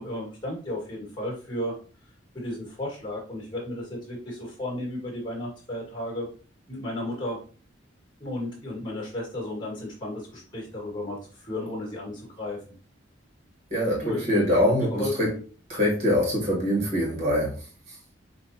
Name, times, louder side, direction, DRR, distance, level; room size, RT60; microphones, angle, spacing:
voice 1, 0.0-1.7 2.3-6.3 6.7-7.4 8.2-12.6 14.0-14.2 14.7-15.4, left 1 dB, 20° left, -2 dB, 1.8 m, -33 dB
voice 2, 13.7-15.3 15.7-18.0, left 1 dB, 35° right, -3 dB, 1.8 m, -24 dB
5.6 x 2.8 x 2.7 m, 0.39 s
head